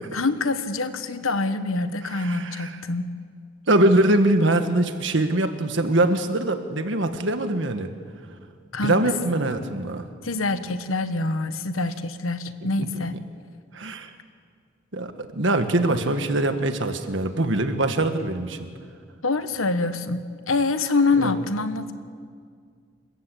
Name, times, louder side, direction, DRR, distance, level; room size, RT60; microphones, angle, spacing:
voice 1, 0.1-3.1 8.7-9.0 10.2-13.2 19.2-21.9, left 3 dB, 85° left, 10 dB, 1.3 m, -25 dB
voice 2, 2.1-2.7 3.7-7.9 8.8-10.1 13.7-14.1 14.9-18.6 21.2-21.3, right 1 dB, 65° right, 7 dB, 1.6 m, -23 dB
28.0 x 14.5 x 8.5 m, 2.1 s
head